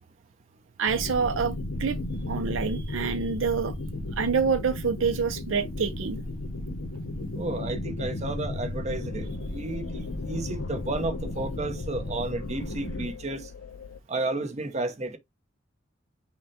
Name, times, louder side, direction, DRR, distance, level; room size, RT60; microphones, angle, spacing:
voice 1, 0.8-2.0 2.3-3.7 4.2-6.2, right 5 dB, 75° right, 0.5 m, -27 dB
sound 1, 0.9-13.1, left 1 dB, 90° left, 0.8 m, -34 dB
voice 2, 7.4-13.5 14.1-15.2, right 2 dB, 35° right, 0.8 m, -32 dB
sound 2, 8.9-14.0, left 6 dB, 70° left, 0.4 m, -42 dB
5.9 x 2.2 x 4.1 m
head